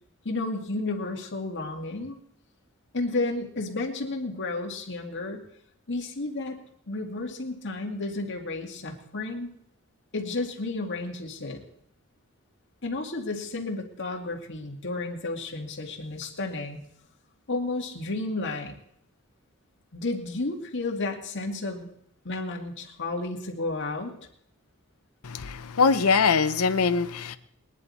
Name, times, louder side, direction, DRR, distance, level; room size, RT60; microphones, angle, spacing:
voice 1, 0.2-2.2 2.9-5.4 5.9-6.6 6.9-9.5 10.1-11.6 12.8-16.8 17.5-18.8 19.9-21.9 22.2-24.1, left 2 dB, 55° left, 1 dB, 2.1 m, -32 dB
voice 2, 25.2-27.4, left 5 dB, 75° left, 11 dB, 0.8 m, -23 dB
21.0 x 10.5 x 4.2 m, 0.68 s
head